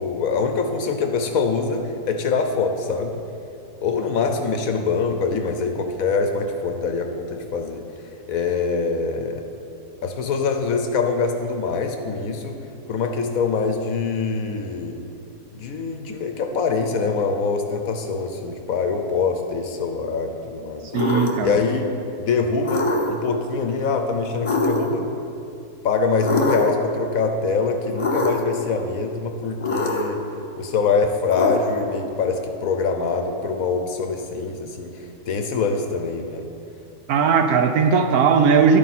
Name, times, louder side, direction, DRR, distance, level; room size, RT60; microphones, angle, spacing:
voice 1, 0.0-3.1 3.8-7.8 8.3-9.4 10.0-12.6 12.9-15.0 15.5-20.9 21.4-21.8 22.2-25.1 25.8-30.2 30.6-34.9 35.3-36.5, left 4 dB, 65° left, 5 dB, 1.0 m, -24 dB
sound 1, 20.9-21.5 22.6-23.3 24.4-25.1 26.2-26.9 28.0-28.6 29.6-30.2 31.3-32.0, left 2 dB, 30° left, 0.6 m, -24 dB
voice 2, 20.9-21.6 37.1-38.8, right 6 dB, 70° right, 7 dB, 1.0 m, -18 dB
11.5 x 8.6 x 4.2 m, 2.7 s
omnidirectional pair, 1.8 m